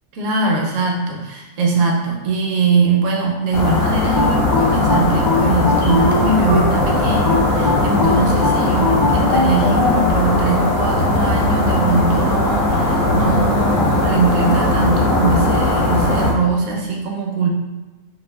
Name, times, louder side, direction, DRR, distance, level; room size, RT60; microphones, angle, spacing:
voice 1, 0.1-17.5, right 3 dB, 70° right, 0 dB, 0.8 m, -21 dB
sound 1, 3.5-16.3, left 2 dB, 60° left, 1.1 m, -18 dB
sound 2, 4.1-6.7 7.3-10.0, left 3 dB, 85° left, 0.4 m, -20 dB
2.7 x 2.4 x 3.2 m, 1.2 s
omnidirectional pair, 1.7 m